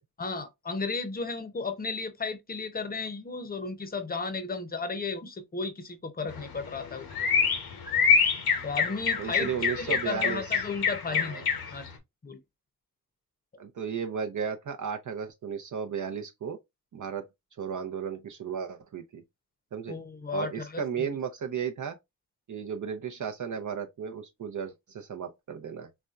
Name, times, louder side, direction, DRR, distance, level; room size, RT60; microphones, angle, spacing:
voice 1, 0.2-7.1 8.6-9.5 9.8-11.9 12.2-12.4 19.9-21.1, left 4 dB, 25° left, 0.7 m, -34 dB
sound 1, 6.3-11.9, left 6 dB, 80° left, 0.9 m, -27 dB
voice 2, 9.2-10.4 11.1-11.4 13.6-16.6 16.9-17.2 17.6-19.2 19.7-20.0 20.3-22.0 22.5-25.9, right 7 dB, 55° right, 0.6 m, -34 dB
4.1 x 2.2 x 2.4 m
cardioid pair, 65°, 36 cm